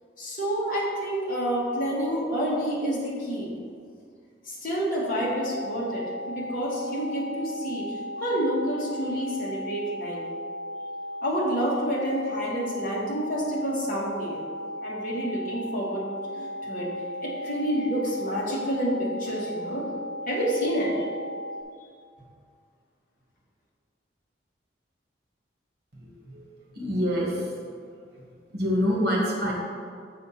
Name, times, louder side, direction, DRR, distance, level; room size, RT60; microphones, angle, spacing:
voice 1, 0.2-3.5 4.4-10.2 11.2-14.4 14.8-16.9 17.2-19.9 20.3-21.1, equal, 50° left, -5 dB, 1.7 m, -29 dB
sound 1, 5.1-21.6, left 1 dB, 75° left, 0.9 m, -36 dB
voice 2, 26.0-26.4 26.7-27.4 28.5-29.5, equal, 55° right, -3 dB, 1.8 m, -26 dB
6.8 x 5.2 x 4.2 m, 2.2 s
head